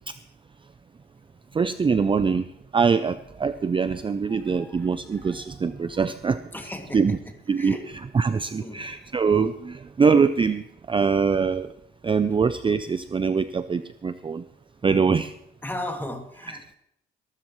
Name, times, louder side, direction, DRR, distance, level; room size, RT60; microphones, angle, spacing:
voice 1, 1.5-2.4 2.7-6.4 6.9-7.2 7.5-7.8 8.1-11.7 12.0-14.4 14.8-15.3, right 5 dB, 25° right, 12 dB, 0.5 m, -23 dB
voice 2, 4.0-5.9 6.5-7.9 8.1-8.3 8.6-9.1 10.2-10.3 15.6-16.8, left 1 dB, 10° left, 3 dB, 2.4 m, -38 dB
21.5 x 13.0 x 3.1 m, 0.78 s
cardioid pair, 90°, 20 cm